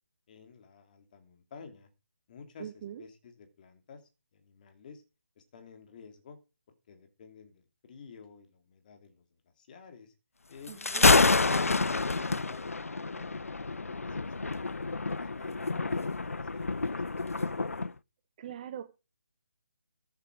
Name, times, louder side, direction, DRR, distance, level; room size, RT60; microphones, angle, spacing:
voice 1, 0.3-1.9 2.3-2.7 3.0-4.0 4.3-5.0 5.4-6.4 6.9-10.1 10.5-13.4 13.7-14.7 15.1-17.0 17.3-17.7, left 5 dB, 35° left, 7 dB, 3.0 m, -51 dB
voice 2, 2.6-3.0 10.7-11.2 18.4-18.8, right 9 dB, 30° right, 9 dB, 1.1 m, -42 dB
Thunder, 10.7-17.9, left 3 dB, 85° left, 0.5 m, -28 dB
14.5 x 8.3 x 4.8 m, 0.31 s
figure-of-eight pair, 150°, 7 cm